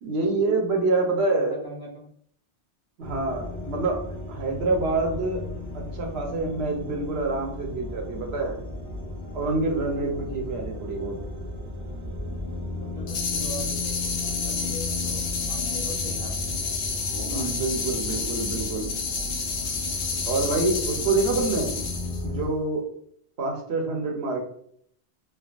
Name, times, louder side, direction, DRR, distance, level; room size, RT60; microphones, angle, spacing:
voice 1, 0.0-1.6 3.0-5.4 5.7-8.6 9.3-11.2 17.2-18.9 20.3-21.8 22.2-22.8 23.4-24.4, right 3 dB, 70° right, 1 dB, 0.9 m, -26 dB
voice 2, 1.2-2.1 10.6-10.8 12.8-16.6 17.1-17.6 18.0-18.4, left 1 dB, 35° left, -1 dB, 0.4 m, -42 dB
sound 1, 3.0-22.5, left 2 dB, 35° right, 0.5 m, -35 dB
sound 2, 13.1-22.2, left 5 dB, 80° left, 0.9 m, -30 dB
3.3 x 2.2 x 2.4 m, 0.65 s
omnidirectional pair, 1.2 m